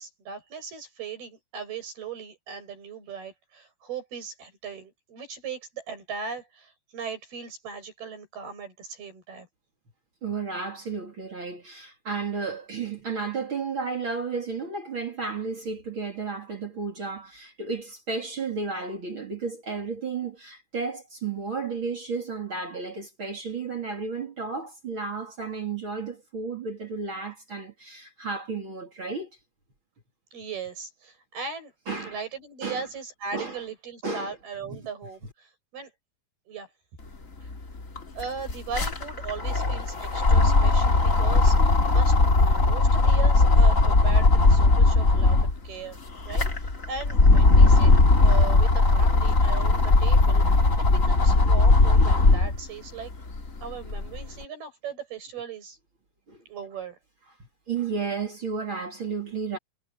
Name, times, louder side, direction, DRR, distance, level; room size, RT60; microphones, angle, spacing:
voice 1, 0.0-9.5 30.3-31.7 32.0-35.9 36.5-36.7 37.4-37.5 38.1-41.6 41.9-45.4 45.6-47.9 48.2-50.4 50.8-53.1 53.6-55.8 56.5-57.0, right 5 dB, 90° right, 10.0 m, -38 dB
voice 2, 10.2-29.3 31.9-32.2 32.6-32.8 33.3-33.6 34.0-34.3 34.7-34.8 56.3-56.4 57.7-59.6, right 4 dB, 35° right, 3.3 m, -33 dB
sound 1, 37.4-37.5 37.8-45.6 46.1-52.6 53.1-54.2, left 3 dB, 25° left, 2.5 m, -19 dB
omnidirectional pair, 4.3 m